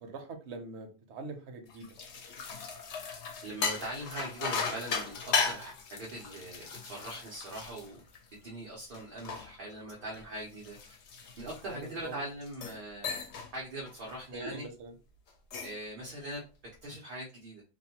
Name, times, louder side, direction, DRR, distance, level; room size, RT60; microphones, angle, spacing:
voice 1, 0.0-2.0 11.7-12.2 14.3-14.9 16.0-16.1, right 3 dB, 85° right, 5 dB, 1.0 m, -43 dB
sound 1, 1.7-8.5 8.9-12.0 12.5-12.8 13.0-13.5 13.9-14.1 15.3-15.8, left 5 dB, 90° left, 0.9 m, -36 dB
voice 2, 3.4-8.0 8.4-11.0 11.4-13.3 13.5-14.7 15.6-16.4 16.8-17.6, right 1 dB, 55° right, -4 dB, 0.9 m, -41 dB
2.6 x 2.1 x 2.8 m, 0.32 s
omnidirectional pair, 1.1 m